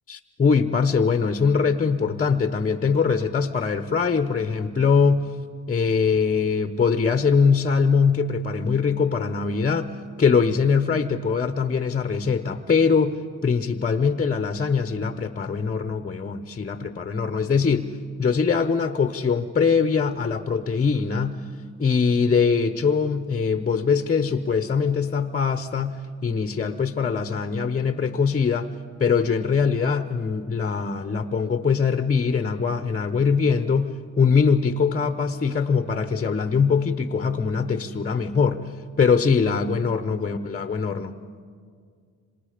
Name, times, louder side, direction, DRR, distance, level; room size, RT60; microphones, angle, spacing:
voice 1, 0.1-5.3 5.7-21.4 21.8-28.7 29.0-38.7 39.0-41.1, left 5 dB, 30° left, 9 dB, 0.8 m, -22 dB
28.0 x 26.0 x 5.0 m, 2.1 s
cardioid pair, 90°, 30 cm